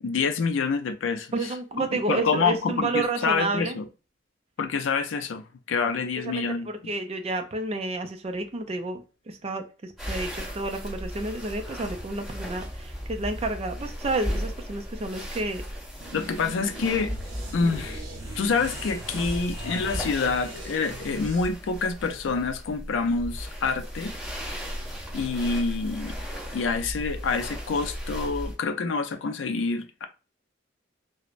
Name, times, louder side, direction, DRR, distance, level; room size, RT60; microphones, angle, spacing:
voice 1, 0.0-3.9 4.6-6.7 16.1-17.1 17.5-18.0 18.4-24.1 25.1-26.1 26.5-30.1, left 4 dB, 80° left, 0.4 m, -27 dB
voice 2, 1.3-3.8 6.2-15.6 17.6-17.7, right 2 dB, 30° right, 0.4 m, -30 dB
sound 1, 10.0-28.5, equal, ahead, 1.3 m, -36 dB
sound 2, 16.0-21.5, right 2 dB, 85° right, 0.7 m, -43 dB
sound 3, 17.0-20.8, left 1 dB, 15° right, 0.8 m, -43 dB
3.0 x 2.1 x 2.4 m
head